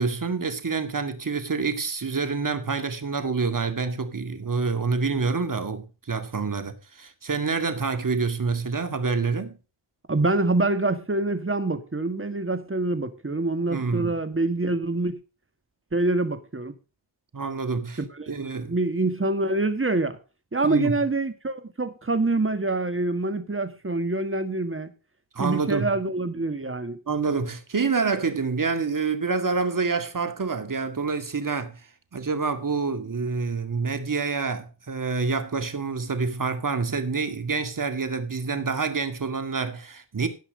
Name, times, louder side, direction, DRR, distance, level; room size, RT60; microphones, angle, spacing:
voice 1, 0.0-9.6 13.7-14.2 17.3-18.0 18.3-18.7 20.6-20.9 25.3-25.9 27.1-31.8 32.1-40.3, right 4 dB, 45° right, 2.2 m, -27 dB
voice 2, 10.1-15.2 15.9-16.7 18.1-20.2 20.5-24.9 25.4-27.0, right 2 dB, 25° right, 1.8 m, -26 dB
17.0 x 5.8 x 5.2 m
cardioid pair, 70°, 46 cm